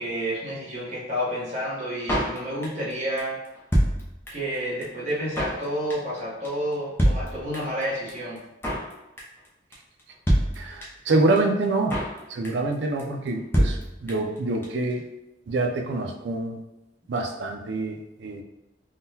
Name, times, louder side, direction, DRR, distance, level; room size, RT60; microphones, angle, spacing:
voice 1, 0.0-3.4 4.3-8.4, equal, 40° right, -7 dB, 1.0 m, -30 dB
Drum kit, 2.1-2.9 3.2-3.3 3.4-4.5 4.8-4.9 5.1-5.6 5.9-6.2 6.4-6.5 6.7-6.8 7.0-7.8 8.1-8.2 8.4-8.9 9.2-9.5 9.7-9.8 10.0-10.1 10.3-11.1 11.4-11.5 11.6-12.2 12.4-12.7 13.0-13.1 13.3-13.4 13.5-14.4 14.6-14.7 14.9-15.0, equal, 10° left, 0.5 m, -25 dB
voice 2, 10.6-12.0 12.3-15.0 15.5-16.6 17.1-18.4, right 2 dB, 70° right, 3 dB, 0.4 m, -26 dB
3.6 x 2.2 x 2.7 m, 0.92 s
head